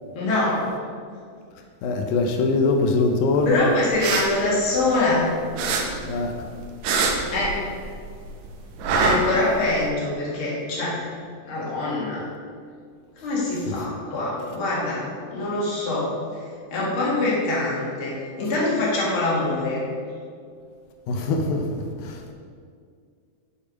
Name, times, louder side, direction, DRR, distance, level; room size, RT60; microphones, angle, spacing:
voice 1, 0.1-0.7 3.4-5.3 7.3-7.6 9.0-11.1 11.5-12.2 13.2-15.0 15.3-16.1 16.7-19.9, left 2 dB, 40° left, -6 dB, 2.5 m, -24 dB
voice 2, 1.8-3.6 6.0-6.3 13.7-13.8 21.1-22.3, left 3 dB, 85° left, 4 dB, 2.4 m, -23 dB
sound 1, 3.8-5.2 5.6-8.0 8.2-9.8, right 3 dB, 70° right, 1.9 m, -24 dB
7.2 x 6.7 x 5.0 m, 2.2 s
omnidirectional pair, 4.0 m